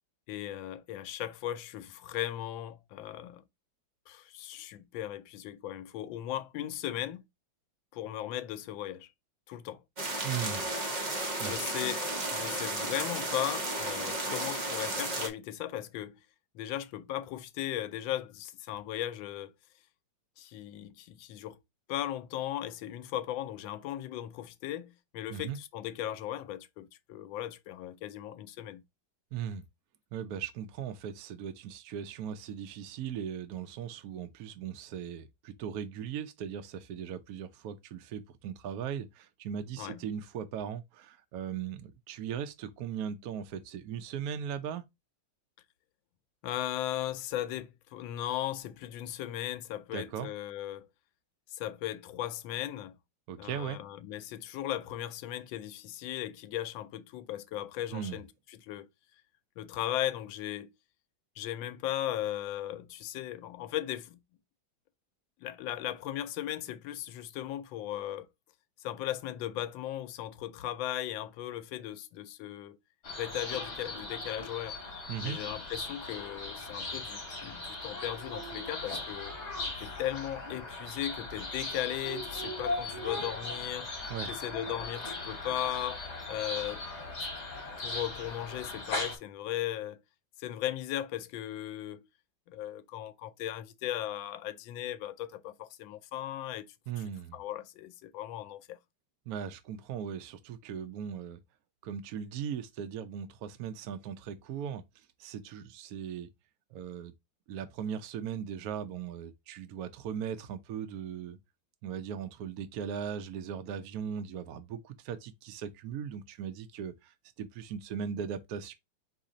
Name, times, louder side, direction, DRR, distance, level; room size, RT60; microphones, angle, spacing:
voice 1, 0.3-3.4 4.1-7.2 7.9-9.1 9.5-9.8 11.4-12.0 12.3-16.2 16.5-19.5 20.4-21.6 21.9-28.8 39.8-40.0 46.4-50.9 51.5-52.9 53.4-58.3 58.6-58.9 59.6-60.7 61.4-64.2 65.4-68.3 68.8-72.8 73.2-74.8 75.2-79.3 79.8-83.9 84.3-86.0 86.3-86.8 87.8-90.0 90.4-92.1 92.5-96.7 97.3-98.8, left 12 dB, 85° left, 1.3 m, -37 dB
sound 1, 10.0-15.3, right 1 dB, 35° right, 0.7 m, -33 dB
voice 2, 10.2-10.6 11.4-11.7 25.3-25.6 29.3-29.6 30.1-44.8 49.9-50.3 53.3-53.8 57.9-58.2 75.1-75.4 84.1-84.3 96.9-97.4 99.3-101.4 101.8-104.8 105.2-106.3 106.7-107.1 107.5-111.4 111.8-118.7, right 8 dB, 70° right, 0.9 m, -38 dB
sound 2, 73.0-89.2, left 2 dB, 40° left, 1.5 m, -38 dB
4.2 x 3.3 x 3.7 m
omnidirectional pair, 2.1 m